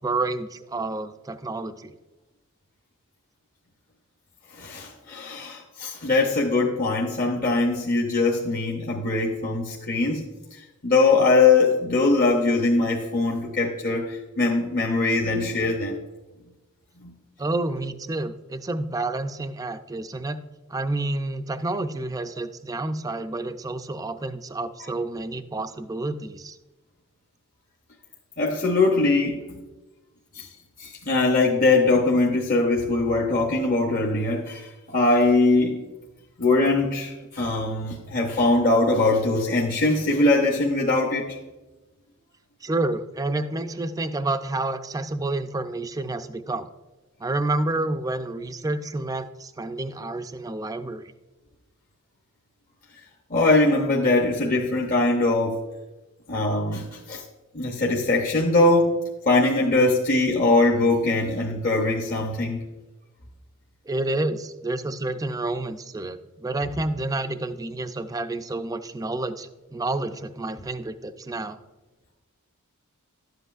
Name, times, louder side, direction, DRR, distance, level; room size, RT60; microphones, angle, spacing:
voice 1, 0.0-2.0 17.4-20.4 20.7-26.6 42.6-46.7 47.2-51.1 63.9-71.6, right 2 dB, 15° right, 10 dB, 0.4 m, -29 dB
voice 2, 4.5-16.0 28.4-29.4 30.3-30.5 30.8-35.8 36.4-41.4 53.3-55.6 56.3-57.2 57.5-59.0 59.3-62.6, left 3 dB, 40° left, -1 dB, 0.8 m, -22 dB
12.0 x 7.9 x 2.4 m, 1.1 s
head